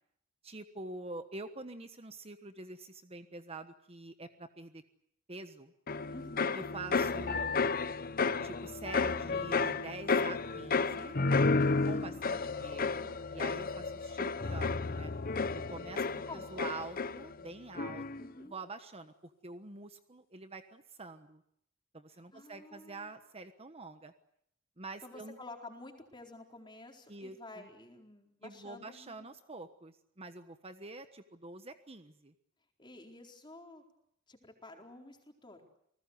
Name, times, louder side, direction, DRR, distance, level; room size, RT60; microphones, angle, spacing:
voice 1, 0.4-4.8 5.3-5.7 6.5-7.6 8.4-11.2 11.9-15.1 15.5-18.0 18.4-21.4 21.9-24.1 24.8-25.4 27.1-27.7 28.4-32.3, right 3 dB, 30° right, 9 dB, 1.3 m, -46 dB
sound 1, 5.9-17.5 17.8-18.3, left 4 dB, 45° left, 0.9 m, -32 dB
voice 2, 6.1-6.6 11.6-12.5 16.3-16.7 18.2-18.6 22.1-23.1 25.0-29.3 32.8-33.8 34.3-35.6, left 2 dB, 25° left, 3 dB, 4.2 m, -51 dB
29.0 x 19.5 x 8.1 m, 0.72 s
head